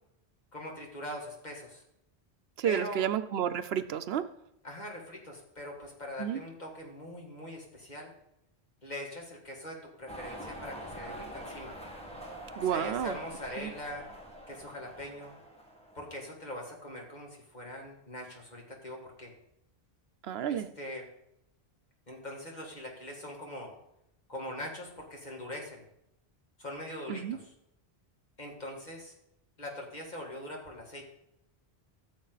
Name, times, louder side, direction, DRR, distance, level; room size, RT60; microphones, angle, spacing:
voice 1, 0.5-1.8 2.6-3.0 4.6-8.1 8.8-11.7 12.6-14.0 14.5-15.3 15.9-19.3 20.5-21.1 22.1-23.7 24.3-25.8 26.6-27.5 28.4-29.2 29.6-31.1, left 1 dB, 45° left, -1 dB, 2.4 m, -42 dB
voice 2, 2.6-4.2 6.2-6.4 12.6-13.2 13.6-13.7 20.2-20.7 27.1-27.4, right 9 dB, 75° right, 12 dB, 0.9 m, -31 dB
sound 1, 10.1-16.2, equal, 5° left, 1.6 m, -45 dB
14.5 x 7.2 x 4.0 m, 0.80 s
omnidirectional pair, 1.1 m